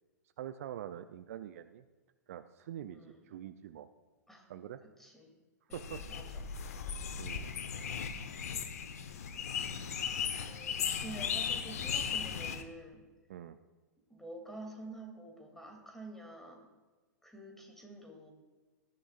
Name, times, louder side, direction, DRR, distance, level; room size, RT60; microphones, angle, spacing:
voice 1, 0.4-1.8 2.3-3.9 4.5-4.8 5.7-6.0 7.2-7.5 13.3-13.6, right 11 dB, 50° right, 11 dB, 0.6 m, -44 dB
voice 2, 2.9-3.3 4.3-4.5 4.8-5.3 5.7-6.5 7.8-8.2 9.4-10.2 10.4-13.1 14.1-16.7 17.2-18.3, right 1 dB, 5° left, 2 dB, 2.8 m, -49 dB
sound 1, 5.7-12.6, left 7 dB, 60° left, 1.1 m, -37 dB
19.0 x 13.5 x 2.5 m, 1.3 s
figure-of-eight pair, 100°, 10 cm